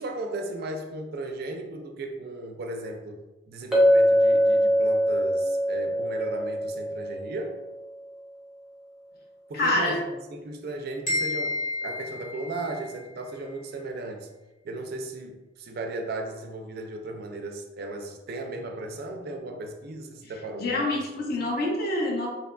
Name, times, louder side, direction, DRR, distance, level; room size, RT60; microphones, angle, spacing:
voice 1, 0.0-3.2 3.5-7.6 9.5-14.3 14.6-21.0 21.4-21.5, right 2 dB, 55° right, 3 dB, 0.3 m, -36 dB
Chink clink, 3.7-7.9, equal, 5° right, 0.6 m, -23 dB
voice 2, 9.5-10.0 20.6-22.3, left 2 dB, 55° left, -1 dB, 0.6 m, -26 dB
sound 1, 11.1-13.1, left 2 dB, 40° left, 1.0 m, -31 dB
2.8 x 2.3 x 2.2 m, 1.1 s
head